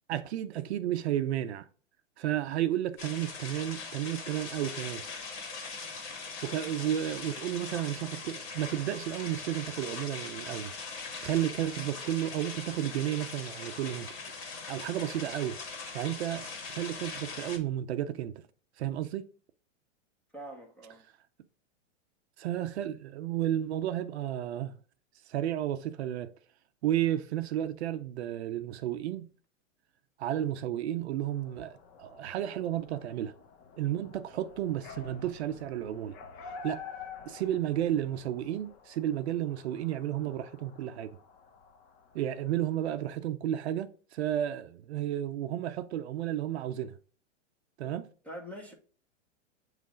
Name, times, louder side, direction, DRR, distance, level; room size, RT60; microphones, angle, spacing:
voice 1, 0.1-1.7 2.2-5.0 6.4-10.7 11.2-14.1 14.7-15.6 15.9-18.3 18.8-19.2 22.4-24.7 25.3-26.3 26.8-29.3 30.2-33.3 33.8-36.2 36.6-36.8 37.3-41.2 42.1-47.0 47.8-48.1, right 12 dB, 60° right, 0.6 m, -32 dB
sound 1, 3.0-17.6, left 4 dB, 55° left, 2.0 m, -41 dB
voice 2, 20.3-21.1 48.2-48.7, equal, 5° left, 1.0 m, -44 dB
sound 2, 31.2-43.2, left 6 dB, 30° left, 0.7 m, -50 dB
8.5 x 3.2 x 3.7 m
hypercardioid pair, 145°, 37 cm